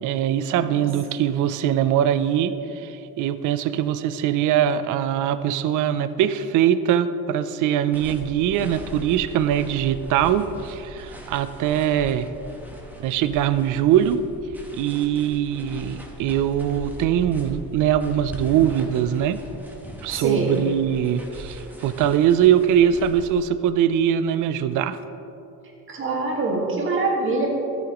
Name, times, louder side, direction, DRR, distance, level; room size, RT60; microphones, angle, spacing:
voice 1, 0.0-12.3 13.0-14.2 14.7-19.4 20.0-25.0, right 10 dB, 60° right, 13 dB, 0.5 m, -22 dB
sound 1, 7.9-23.3, equal, 5° right, 1.1 m, -40 dB
voice 2, 20.1-20.6 25.9-27.5, right 2 dB, 35° right, -1 dB, 1.8 m, -24 dB
12.5 x 9.0 x 3.0 m, 2.9 s
cardioid pair, 135°, 35 cm